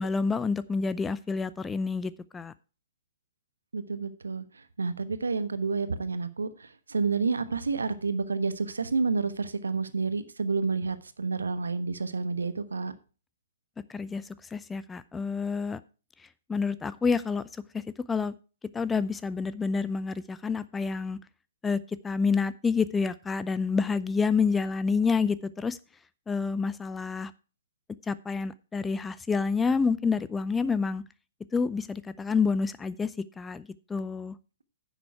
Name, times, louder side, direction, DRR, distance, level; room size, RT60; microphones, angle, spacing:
voice 1, 0.0-2.5 13.9-14.2 14.5-15.8 16.5-17.4 17.7-17.8 18.1-18.3 18.7-21.2 21.6-25.8 26.3-27.3 28.1-31.0 31.5-33.1 33.4-34.3, left 5 dB, 10° left, 15 dB, 0.4 m, -28 dB
voice 2, 3.7-12.9, right 4 dB, 70° right, 12 dB, 1.1 m, -30 dB
10.5 x 7.2 x 4.7 m, 0.35 s
figure-of-eight pair, 120°, 0 cm